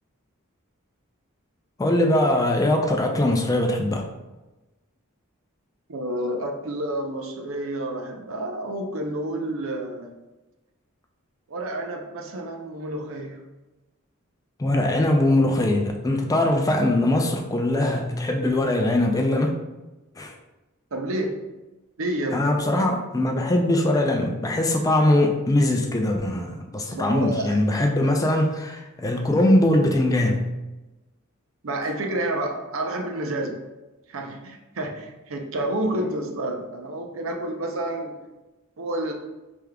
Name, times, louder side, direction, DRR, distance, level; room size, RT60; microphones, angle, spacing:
voice 1, 1.8-4.1 14.6-19.6 20.2-20.3 22.3-30.5, left 1 dB, 15° left, 3 dB, 0.3 m, -21 dB
voice 2, 5.9-10.1 11.5-13.4 20.9-21.4 22.0-22.5 26.9-27.5 31.6-33.6 34.1-38.2 38.8-39.1, right 1 dB, 65° right, 3 dB, 0.6 m, -29 dB
4.9 x 3.4 x 2.2 m, 1.1 s
head